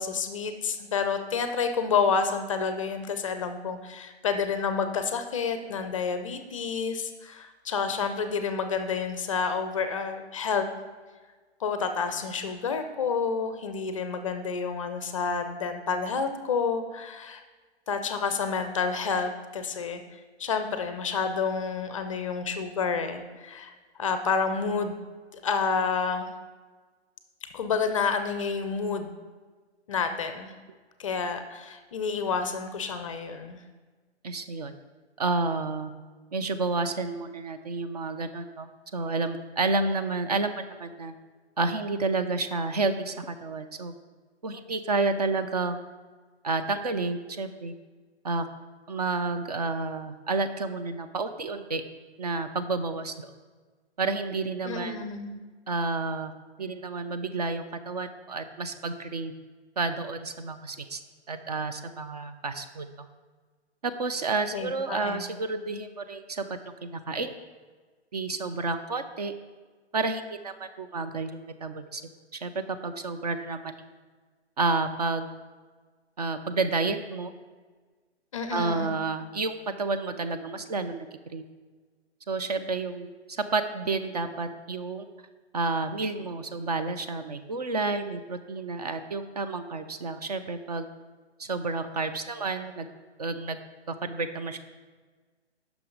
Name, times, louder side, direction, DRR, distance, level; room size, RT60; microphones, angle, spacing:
voice 1, 0.0-10.6 11.6-17.4 17.9-20.0 20.4-23.7 24.0-25.0 25.3-26.3 27.5-29.1 29.9-30.5 31.0-33.6 54.6-55.4 64.5-65.3 78.3-78.9, left 5 dB, 30° left, 8 dB, 0.5 m, -29 dB
voice 2, 34.2-34.7 35.2-35.9 36.3-41.1 41.6-43.9 44.4-45.8 46.4-47.7 48.2-48.4 48.9-51.8 52.2-53.3 54.0-55.0 55.7-56.3 56.6-59.3 59.8-61.0 61.3-63.1 63.8-66.4 66.8-67.3 68.1-69.3 69.9-72.0 72.3-72.5 72.8-73.7 74.6-75.3 76.2-77.3 78.5-81.4 82.3-85.1 85.5-90.9 91.4-92.9 93.2-93.6 93.9-94.6, right 3 dB, 40° right, 9 dB, 0.4 m, -30 dB
9.1 x 5.9 x 3.9 m, 1.4 s
figure-of-eight pair, 135°, 34 cm